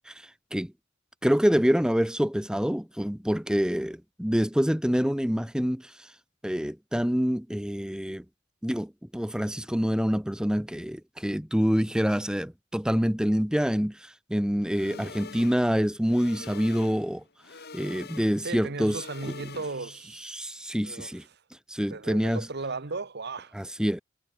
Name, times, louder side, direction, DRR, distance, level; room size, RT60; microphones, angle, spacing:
voice 1, 1.2-5.9 6.4-8.2 8.6-17.2 17.7-19.0 20.3-21.2 21.7-22.5 23.5-24.0, equal, 5° right, 1.1 m, -26 dB
Sci-Fi Alarm, 14.6-20.0, left 4 dB, 55° left, 3.1 m, -45 dB
voice 2, 18.4-20.4 20.8-21.4 21.9-23.5, right 3 dB, 55° right, 1.4 m, -37 dB
head